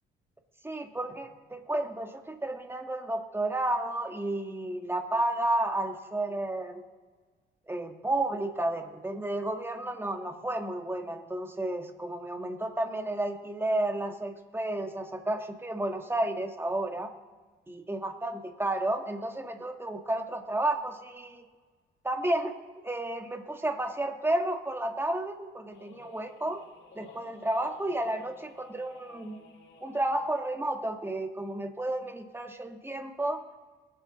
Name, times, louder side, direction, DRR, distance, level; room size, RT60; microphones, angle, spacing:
voice 1, 0.6-6.8 7.7-17.1 17.7-21.4 22.0-22.5 22.8-26.6 26.9-29.4 29.8-33.4, right 1 dB, 10° right, 5 dB, 1.4 m, -32 dB
sound 1, 25.7-30.4, left 4 dB, 65° left, 2.5 m, -54 dB
22.5 x 7.9 x 4.0 m, 1.4 s
cardioid pair, 90°, 20 cm